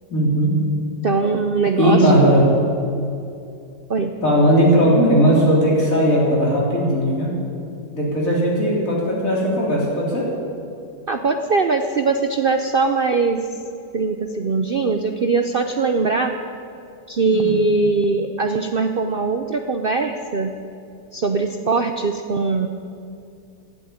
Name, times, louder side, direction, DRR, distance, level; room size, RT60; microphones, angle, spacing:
voice 1, 0.1-0.6 1.8-2.5 4.2-7.3 7.9-10.3 17.3-17.6, equal, 50° left, -4 dB, 4.1 m, -17 dB
voice 2, 1.0-2.1 3.9-4.1 11.1-13.4 13.9-16.4 17.1-20.5 21.1-22.7, right 4 dB, 85° right, 6 dB, 0.4 m, -21 dB
12.5 x 10.0 x 9.5 m, 2.6 s
omnidirectional pair, 1.9 m